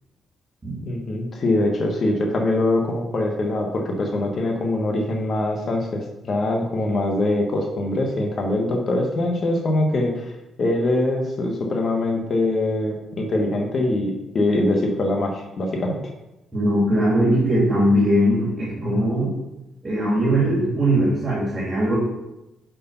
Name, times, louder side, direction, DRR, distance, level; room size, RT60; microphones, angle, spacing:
voice 1, 0.8-10.3 10.6-16.0, left 2 dB, 45° left, 1 dB, 1.2 m, -23 dB
voice 2, 16.5-19.3 19.8-22.0, right 1 dB, 20° right, -7 dB, 2.4 m, -20 dB
5.0 x 4.7 x 5.5 m, 0.95 s
cardioid pair, 90°, 0 cm